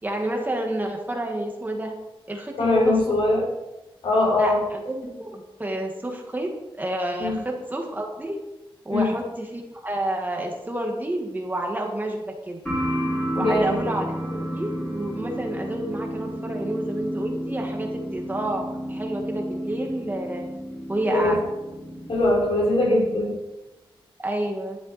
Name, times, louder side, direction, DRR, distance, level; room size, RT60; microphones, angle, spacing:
voice 1, 0.0-1.9 2.3-3.2 4.4-6.5 6.8-8.4 8.9-12.6 13.4-20.5 20.9-21.4 24.2-24.8, right 1 dB, 20° right, 1 dB, 1.8 m, -29 dB
voice 2, 2.6-3.5 4.0-4.6 7.2-7.4 8.9-9.1 13.4-13.8 21.0-21.4 22.1-23.4, left 2 dB, 80° left, -4 dB, 4.5 m, -21 dB
sound 1, 12.7-22.2, equal, 10° left, 4.7 m, -31 dB
11.5 x 11.0 x 4.2 m, 1.0 s
wide cardioid pair, 175°, 10 cm